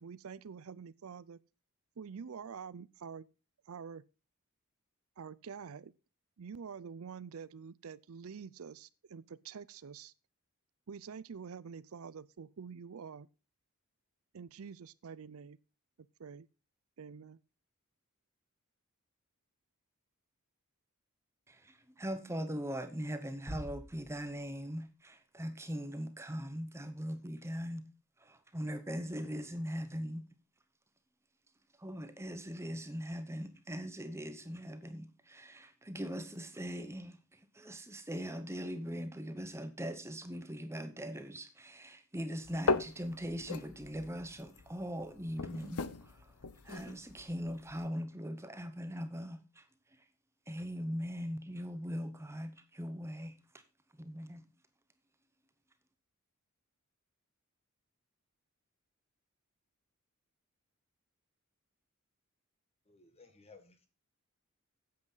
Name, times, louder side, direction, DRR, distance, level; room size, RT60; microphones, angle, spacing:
voice 1, 0.0-1.4 2.0-3.3 3.7-4.0 5.2-5.9 6.4-10.1 10.9-13.3 14.3-15.6 16.2-16.5 17.0-17.4, right 6 dB, 75° right, 0.5 m, -47 dB
voice 2, 21.5-27.8 28.2-30.3 31.8-46.3 46.6-49.6 50.5-53.4 54.0-54.4, equal, 10° right, 0.9 m, -40 dB
sound 1, 23.5-24.9, equal, 10° left, 2.6 m, -47 dB
sound 2, 42.4-47.9, left 4 dB, 90° left, 0.8 m, -38 dB
voice 3, 62.9-63.9, left 4 dB, 30° left, 1.8 m, -59 dB
9.5 x 7.8 x 5.6 m
head